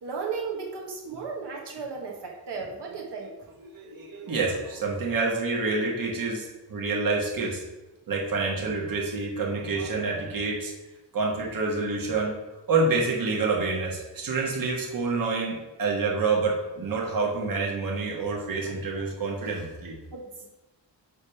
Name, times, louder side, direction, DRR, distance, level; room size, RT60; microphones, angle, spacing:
voice 1, 0.0-3.3 20.1-20.5, right 5 dB, 70° right, -1 dB, 1.4 m, -35 dB
voice 2, 3.7-7.6 8.1-10.7 11.1-12.3 12.7-19.9, right 3 dB, 50° right, -1 dB, 1.4 m, -27 dB
9.4 x 3.4 x 6.3 m, 1.1 s
wide cardioid pair, 175°, 43 cm